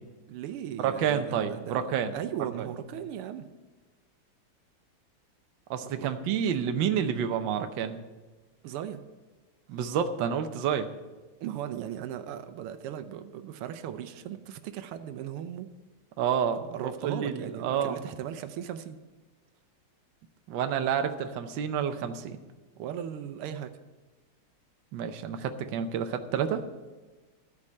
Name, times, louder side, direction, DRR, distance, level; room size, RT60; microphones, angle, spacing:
voice 1, 0.3-3.5 5.8-6.1 8.6-9.0 11.4-15.7 16.7-19.0 22.8-23.7, right 10 dB, 90° right, 10 dB, 1.6 m, -37 dB
voice 2, 0.8-2.2 2.6-2.7 5.7-8.0 9.7-10.9 16.2-18.0 20.5-22.4 24.9-26.6, right 8 dB, 65° right, 7 dB, 1.4 m, -29 dB
13.0 x 4.8 x 8.5 m, 1.2 s
omnidirectional pair, 2.4 m